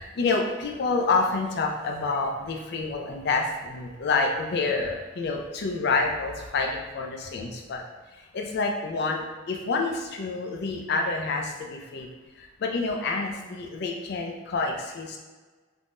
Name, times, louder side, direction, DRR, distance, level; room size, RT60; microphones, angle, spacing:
voice 1, 0.0-7.8 8.3-12.1 12.4-15.2, left 3 dB, 50° left, 2 dB, 0.4 m, -28 dB
3.5 x 2.1 x 2.5 m, 1.3 s
head